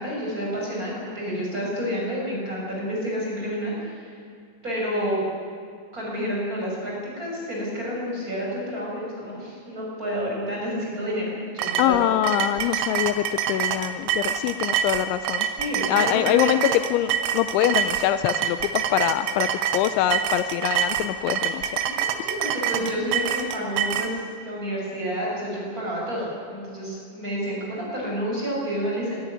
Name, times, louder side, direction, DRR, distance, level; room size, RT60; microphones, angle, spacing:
voice 1, 0.0-4.2 4.6-5.2 5.9-12.0 12.6-12.8 15.6-16.4 21.8-24.2 24.4-29.1, equal, 15° right, -4 dB, 6.2 m, -29 dB
sound 1, 11.6-24.1, right 9 dB, 80° right, 3.6 m, -26 dB
voice 2, 11.8-15.5 15.9-21.9, left 12 dB, 80° left, 12 dB, 2.9 m, -24 dB
22.0 x 13.0 x 10.0 m, 2.4 s
omnidirectional pair, 5.5 m